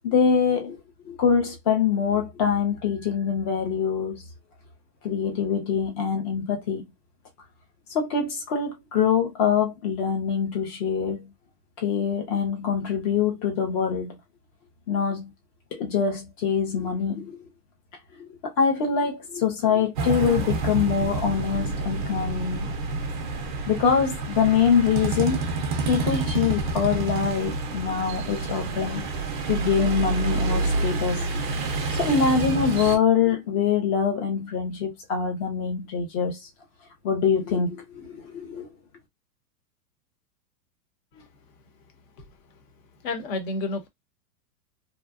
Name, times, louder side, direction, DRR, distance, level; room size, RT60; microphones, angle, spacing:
voice 1, 0.0-0.8 1.1-4.2 5.0-6.8 7.9-11.3 11.8-14.2 14.9-15.3 15.7-17.4 18.2-22.7 23.7-25.4 25.9-29.1 29.5-31.3 32.0-36.4 37.0-38.7, left 6 dB, 25° left, 0.5 m, -24 dB
sound 1, 20.0-33.0, right 3 dB, 35° right, 0.4 m, -28 dB
voice 2, 42.2-42.6 43.0-43.9, left 2 dB, 50° left, 1.0 m, -32 dB
2.7 x 2.2 x 2.3 m
hypercardioid pair, 150°, 49 cm